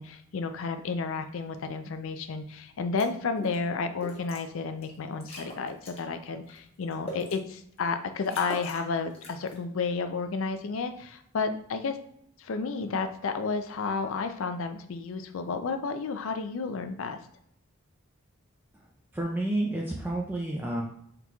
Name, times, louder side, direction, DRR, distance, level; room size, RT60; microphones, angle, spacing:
voice 1, 0.0-12.0 12.4-17.2, left 4 dB, 65° left, 8 dB, 0.4 m, -32 dB
sound 1, 3.0-3.1 3.4-3.6 4.0-4.4 4.8-4.9 5.2-6.0 6.5-7.3 7.8-7.9 8.2-8.9 9.1-9.6, left 1 dB, 25° left, 0.8 m, -40 dB
voice 2, 19.1-20.8, right 1 dB, 10° right, -2 dB, 0.4 m, -30 dB
4.3 x 3.9 x 2.3 m, 0.68 s
head